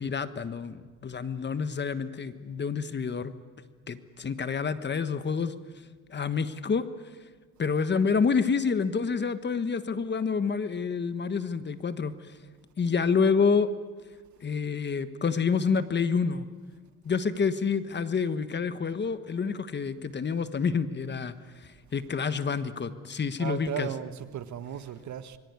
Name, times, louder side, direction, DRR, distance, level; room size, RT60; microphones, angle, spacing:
voice 1, 0.0-3.3 3.9-5.5 6.1-6.8 7.6-12.2 12.8-13.7 14.4-16.5 17.0-21.3 21.9-23.9, left 5 dB, 35° left, 1.4 m, -28 dB
voice 2, 23.4-25.4, right 10 dB, 60° right, 1.5 m, -36 dB
26.0 x 22.5 x 9.7 m
cardioid pair, 120°, 32 cm